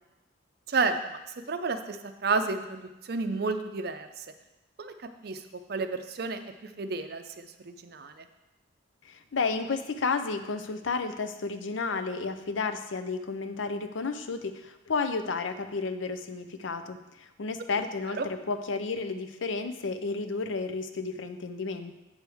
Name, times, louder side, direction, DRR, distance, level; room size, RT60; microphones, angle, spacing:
voice 1, 0.7-1.2 1.5-4.3 4.8-5.4 5.7-8.3 18.2-18.3, right 4 dB, 55° right, 8 dB, 0.5 m, -31 dB
voice 2, 9.1-21.9, left 4 dB, 75° left, 9 dB, 0.5 m, -32 dB
8.0 x 6.2 x 3.5 m, 1.0 s
head